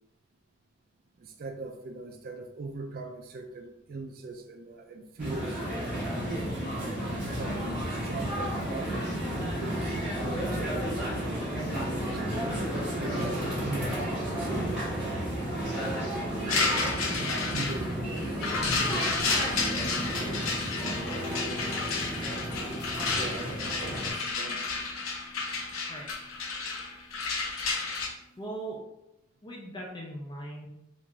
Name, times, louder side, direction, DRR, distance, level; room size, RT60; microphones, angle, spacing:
voice 1, 1.2-5.6 6.6-9.2 9.6-12.2 12.9-15.3 15.9-18.5 18.9-21.2 23.1-25.0, right 3 dB, 45° right, 4 dB, 0.3 m, -41 dB
sound 1, 5.2-24.1, equal, 5° right, 1.3 m, -32 dB
sound 2, 16.5-28.1, left 4 dB, 85° left, 0.7 m, -31 dB
sound 3, 21.0-27.5, left 1 dB, 70° right, 1.0 m, -45 dB
voice 2, 28.4-28.8 29.4-30.7, right 1 dB, 20° left, -2 dB, 0.4 m, -39 dB
3.5 x 2.4 x 3.3 m, 0.84 s
head